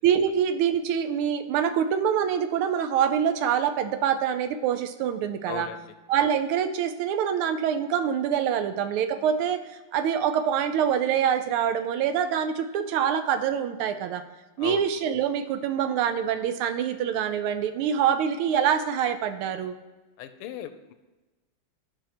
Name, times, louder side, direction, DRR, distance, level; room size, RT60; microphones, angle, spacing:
voice 1, 0.0-5.7 6.1-9.6 9.9-14.2 14.6-19.7, right 8 dB, 85° right, 9 dB, 1.5 m, -25 dB
voice 2, 5.5-5.8 14.6-14.9 20.2-20.9, left 11 dB, 90° left, 10 dB, 1.5 m, -37 dB
12.5 x 4.9 x 3.0 m, 1.2 s
omnidirectional pair, 2.3 m